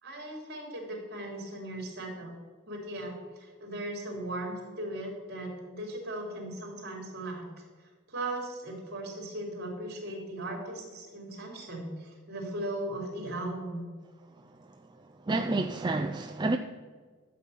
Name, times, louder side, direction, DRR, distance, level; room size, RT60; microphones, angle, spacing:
voice 1, 0.0-2.3 2.6-7.4 8.1-13.8, right 1 dB, 55° right, 3.4 m, -38 dB
voice 2, 15.3-16.6, right 2 dB, 20° right, 0.4 m, -29 dB
12.0 x 7.5 x 5.7 m
head